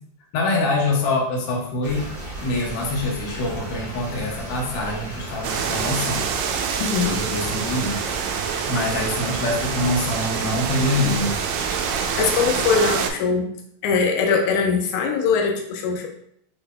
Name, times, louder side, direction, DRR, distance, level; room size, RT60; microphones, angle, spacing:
voice 1, 0.3-2.1 2.4-6.6 7.0-11.4, left 2 dB, 65° left, -1 dB, 1.7 m, -25 dB
sound 1, 1.8-12.9, right 2 dB, 35° right, 0.9 m, -35 dB
sound 2, 5.4-13.1, right 7 dB, 80° right, 1.6 m, -26 dB
voice 2, 6.8-7.2 12.2-13.5 13.8-16.1, left 5 dB, 85° left, 3 dB, 2.1 m, -21 dB
6.0 x 3.3 x 2.2 m, 0.69 s
omnidirectional pair, 3.4 m